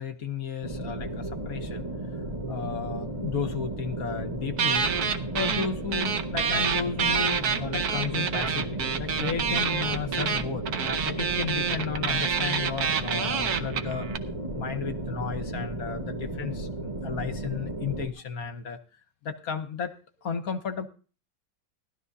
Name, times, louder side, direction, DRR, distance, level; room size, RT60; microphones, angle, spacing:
voice 1, 0.0-1.9 2.1-2.2 2.5-4.9 5.3-10.6 11.0-14.1 14.5-18.8 19.2-20.9, left 6 dB, 55° left, 8 dB, 1.2 m, -33 dB
sound 1, 0.6-18.1, right 1 dB, 20° right, 1.3 m, -34 dB
sound 2, 4.6-5.7 5.9-14.2, right 6 dB, 60° right, 1.3 m, -27 dB
18.0 x 12.5 x 2.7 m, 0.37 s
omnidirectional pair, 2.1 m